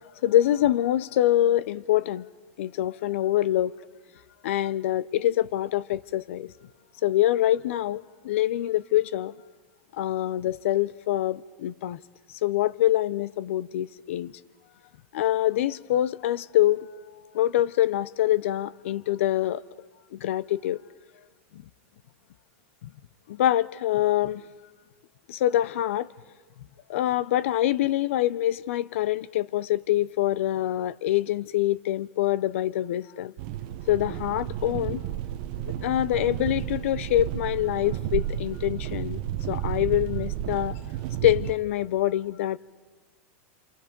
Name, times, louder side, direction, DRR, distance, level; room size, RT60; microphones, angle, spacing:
voice 1, 0.2-2.2 2.6-3.7 4.4-6.5 7.0-9.3 10.0-12.0 12.4-14.3 15.1-16.9 17.3-19.6 20.2-20.8 23.4-24.4 25.3-26.1 26.9-33.3 33.9-35.0 35.6-39.2 39.5-40.7 41.2-42.6, left 13 dB, 70° left, 0.6 m, -25 dB
sound 1, 33.4-41.5, right 11 dB, 45° right, 0.9 m, -32 dB
27.5 x 24.5 x 5.3 m
supercardioid pair, 160°, 7 cm